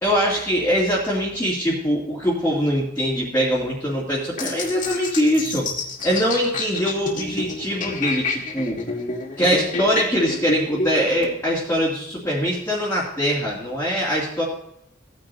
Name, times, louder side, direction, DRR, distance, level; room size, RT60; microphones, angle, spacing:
voice 1, 0.0-5.7 6.0-8.8 9.4-14.4, equal, 15° left, -8 dB, 2.6 m, -22 dB
sound 1, 4.4-11.3, left 3 dB, 45° left, 1.9 m, -29 dB
17.0 x 9.8 x 2.8 m, 0.80 s
head